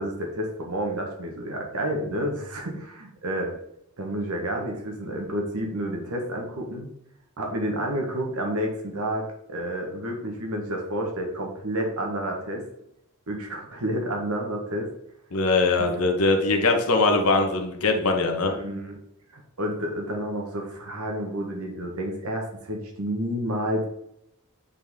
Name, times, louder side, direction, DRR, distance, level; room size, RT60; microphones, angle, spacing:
voice 1, 0.0-3.5 4.0-6.9 7.4-12.6 13.3-14.9 15.8-15.9 18.4-19.0 19.3-23.9, equal, 70° right, 1 dB, 1.5 m, -30 dB
voice 2, 15.3-18.5, left 3 dB, 75° left, 4 dB, 1.2 m, -21 dB
9.1 x 4.1 x 3.6 m, 0.79 s
head